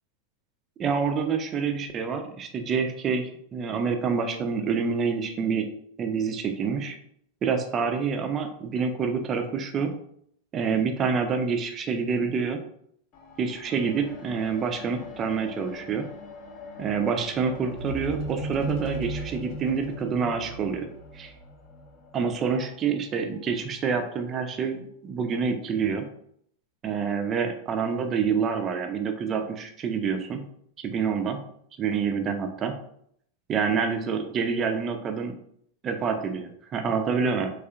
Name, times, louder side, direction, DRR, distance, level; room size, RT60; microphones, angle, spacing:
voice 1, 0.8-5.7 6.0-7.0 7.4-9.9 10.5-12.6 13.4-16.1 16.8-20.9 21.1-21.3 22.1-26.1 26.8-30.5 30.8-31.4 31.8-32.8 33.5-35.4 35.8-37.5, right 5 dB, 25° right, 6 dB, 0.4 m, -27 dB
sound 1, 13.1-22.7 23.5-23.6, equal, 40° left, 0.6 m, -39 dB
3.5 x 2.4 x 2.3 m, 0.67 s
figure-of-eight pair, 90°, 0 cm